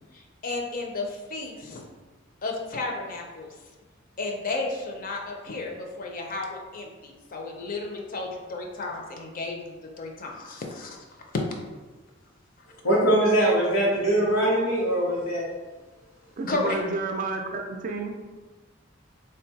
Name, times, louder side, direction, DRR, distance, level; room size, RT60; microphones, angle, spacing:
voice 1, 0.1-1.9 2.4-3.5 4.2-11.0 11.3-11.4 16.5-16.8, left 3 dB, 45° left, 1 dB, 0.4 m, -33 dB
voice 2, 12.8-15.5, right 1 dB, 90° left, -7 dB, 0.9 m, -22 dB
voice 3, 16.4-18.1, right 3 dB, 40° right, 3 dB, 0.4 m, -30 dB
3.7 x 2.2 x 2.7 m, 1.3 s
head